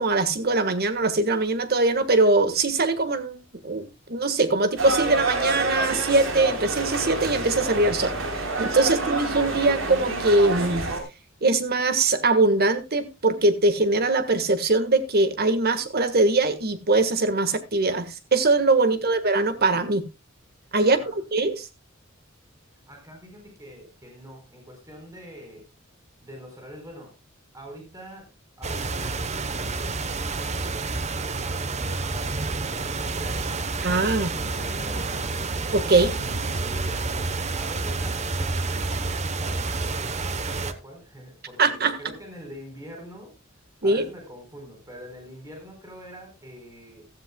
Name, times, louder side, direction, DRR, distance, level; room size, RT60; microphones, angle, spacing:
voice 1, 0.0-8.2 8.6-10.8 11.4-20.0 20.7-21.0 21.3-21.7 33.8-34.3 35.7-36.1 41.6-42.0 43.8-44.0, right 2 dB, 50° right, 1.5 m, -22 dB
sound 1, 4.8-11.0, right 2 dB, 85° right, 3.9 m, -28 dB
voice 2, 20.8-21.2 22.9-25.7 26.2-27.1 27.5-28.3 28.6-33.6 34.3-35.4 36.1-37.3 37.5-43.4 43.8-47.1, equal, 15° right, 4.4 m, -44 dB
sound 2, 28.6-40.7, right 3 dB, 35° right, 1.0 m, -29 dB
15.5 x 13.5 x 2.3 m
head